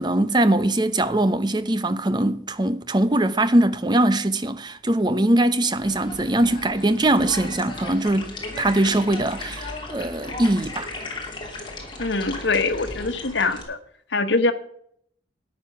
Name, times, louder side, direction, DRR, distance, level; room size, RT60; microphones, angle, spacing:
voice 1, 0.0-10.9, right 1 dB, 25° right, 0.7 m, -21 dB
sound 1, 5.8-13.6, left 2 dB, 25° left, 3.0 m, -36 dB
voice 2, 12.0-13.8 14.1-14.5, left 3 dB, 80° left, 1.3 m, -23 dB
13.0 x 9.7 x 5.9 m
head